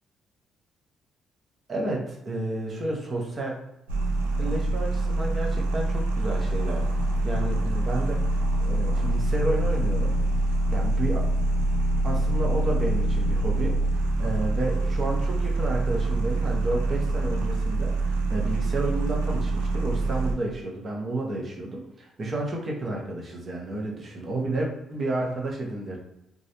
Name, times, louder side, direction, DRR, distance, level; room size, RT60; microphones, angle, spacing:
voice 1, 1.7-3.5 4.4-6.8 7.2-8.2 8.6-10.2 10.7-11.3 12.0-26.0, right 2 dB, 45° right, -1 dB, 0.8 m, -31 dB
sound 1, 3.9-20.3, right 2 dB, 90° right, 0.3 m, -25 dB
2.4 x 2.0 x 2.9 m, 0.87 s
hypercardioid pair, 45°, 0 cm